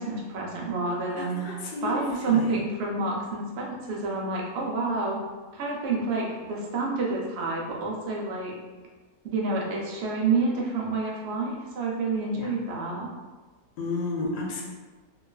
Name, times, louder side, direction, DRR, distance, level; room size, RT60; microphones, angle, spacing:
voice 1, 0.0-1.4 1.8-5.2 5.5-8.5 9.2-13.1, right 3 dB, 70° right, -3 dB, 0.6 m, -28 dB
voice 2, 1.2-2.5 12.3-12.5 13.8-14.6, left 3 dB, 90° left, -1 dB, 1.2 m, -32 dB
3.0 x 2.3 x 2.2 m, 1.3 s
omnidirectional pair, 1.7 m